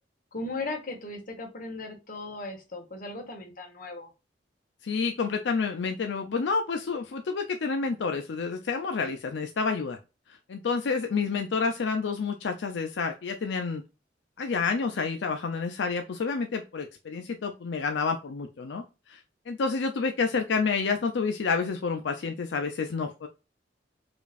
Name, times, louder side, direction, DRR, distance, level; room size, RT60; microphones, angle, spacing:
voice 1, 0.3-4.1, left 2 dB, 50° left, 2 dB, 1.2 m, -37 dB
voice 2, 4.8-10.0 10.5-13.8 14.4-19.2 19.5-23.3, left 4 dB, 80° left, 5 dB, 0.5 m, -29 dB
5.0 x 2.5 x 2.4 m, 0.28 s
head